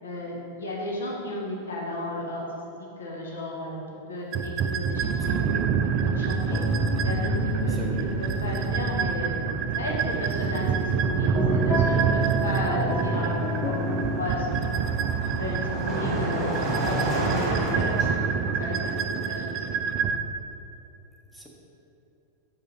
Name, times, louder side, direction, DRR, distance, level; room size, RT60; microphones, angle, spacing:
voice 1, 0.0-2.4 3.0-3.8 4.1-5.6 6.0-6.6 7.0-7.3 7.6-9.4 9.7-14.8 15.3-18.0 18.6-19.6, left 1 dB, 65° left, -2 dB, 1.1 m, -34 dB
sound 1, 4.3-20.2, right 6 dB, 40° right, 0.3 m, -27 dB
voice 2, 5.4-5.7 7.7-8.1 16.2-16.6 21.3-21.5, equal, ahead, -3 dB, 0.9 m, -40 dB
sound 2, 6.5-17.1, left 1 dB, 15° left, 0.5 m, -32 dB
Car passing by, 10.7-10.9 11.1-18.1, right 2 dB, 20° right, 1.5 m, -31 dB
5.3 x 4.9 x 4.0 m, 2.8 s
figure-of-eight pair, 90°, 0 cm